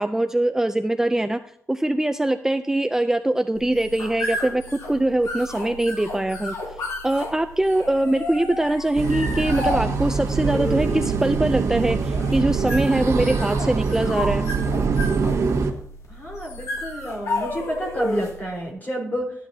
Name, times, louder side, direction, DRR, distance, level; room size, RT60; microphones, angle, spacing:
voice 1, 0.0-1.4 1.7-6.5 7.0-14.4, right 1 dB, 10° right, 8 dB, 0.4 m, -22 dB
sound 1, 3.6-18.5, left 2 dB, 80° left, 3.2 m, -32 dB
sound 2, 9.0-15.7, right 4 dB, 75° right, 1.6 m, -24 dB
voice 2, 16.1-19.3, equal, 35° left, -1 dB, 4.4 m, -29 dB
14.0 x 10.5 x 2.8 m, 0.66 s
cardioid pair, 100°, 5 cm